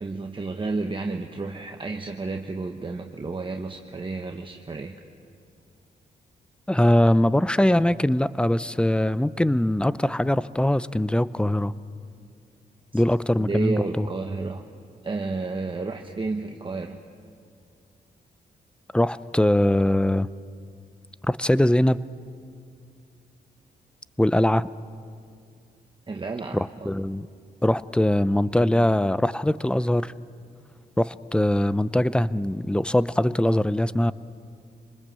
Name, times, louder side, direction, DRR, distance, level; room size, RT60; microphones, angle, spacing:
voice 1, 0.0-4.9 13.4-14.6 15.0-17.0 26.1-26.9, right 3 dB, 30° right, 3 dB, 1.2 m, -31 dB
voice 2, 6.7-11.7 12.9-14.1 18.9-20.3 21.2-22.0 24.2-24.7 26.5-27.3 27.6-30.1 31.0-34.1, left 1 dB, 5° left, 17 dB, 0.6 m, -22 dB
26.0 x 20.0 x 7.6 m, 2.4 s
cardioid pair, 70°, 17 cm